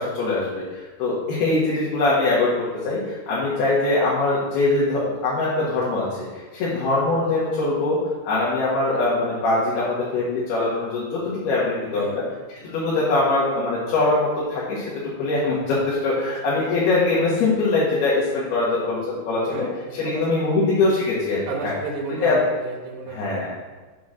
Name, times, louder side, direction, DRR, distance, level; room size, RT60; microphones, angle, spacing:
voice 1, 0.0-8.0 8.2-12.2 12.5-21.7 22.2-22.4 23.1-23.5, left 2 dB, 75° left, -8 dB, 3.6 m, -22 dB
voice 2, 19.5-20.5 21.5-23.5, right 5 dB, 85° right, 1 dB, 3.2 m, -32 dB
8.1 x 4.8 x 6.4 m, 1.3 s
omnidirectional pair, 4.6 m